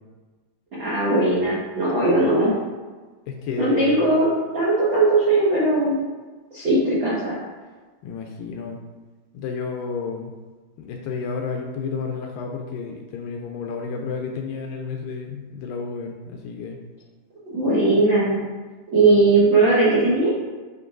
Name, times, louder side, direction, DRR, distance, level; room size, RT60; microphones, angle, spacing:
voice 1, 0.8-2.6 3.6-4.3 4.5-5.9 6.5-7.4 17.5-18.4 18.9-20.3, right 2 dB, 60° right, -9 dB, 1.3 m, -19 dB
voice 2, 3.3-4.2 8.0-8.8 9.3-10.3 10.8-16.8, left 5 dB, 80° left, 2 dB, 2.1 m, -31 dB
9.7 x 4.5 x 2.5 m, 1.3 s
omnidirectional pair, 4.3 m